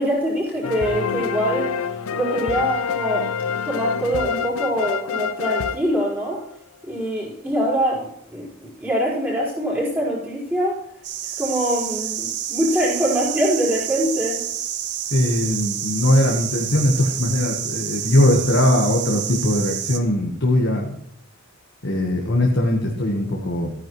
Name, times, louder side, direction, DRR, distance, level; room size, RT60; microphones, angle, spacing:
voice 1, 0.0-1.7 2.1-3.3 3.6-6.4 6.8-10.8 11.2-14.4, equal, 10° right, -8 dB, 4.7 m, -23 dB
sound 1, 0.6-6.5, left 7 dB, 90° left, 0.6 m, -27 dB
sound 2, 11.0-20.0, right 10 dB, 50° right, 0.7 m, -29 dB
voice 2, 15.1-21.0 21.8-23.7, left 1 dB, 60° left, -1 dB, 1.3 m, -20 dB
14.5 x 9.7 x 3.1 m, 0.74 s
head